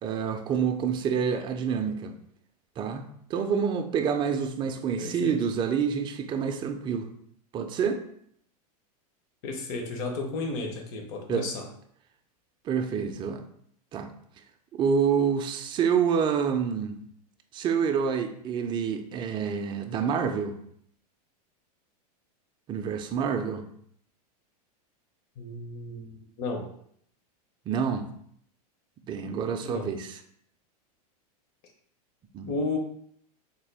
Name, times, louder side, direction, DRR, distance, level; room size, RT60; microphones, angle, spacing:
voice 1, 0.0-2.1 2.8-7.1 7.5-8.0 11.3-11.5 12.7-13.4 13.9-14.1 14.7-17.0 17.5-20.6 22.7-23.7 27.7-28.1 29.1-30.2 32.3-32.5, right 6 dB, 25° right, 0.3 m, -27 dB
voice 2, 5.0-5.4 9.4-11.7 25.4-26.7 29.6-29.9 32.5-32.8, left 3 dB, 50° left, 0.8 m, -33 dB
3.5 x 2.2 x 3.3 m
hypercardioid pair, 125°, 20 cm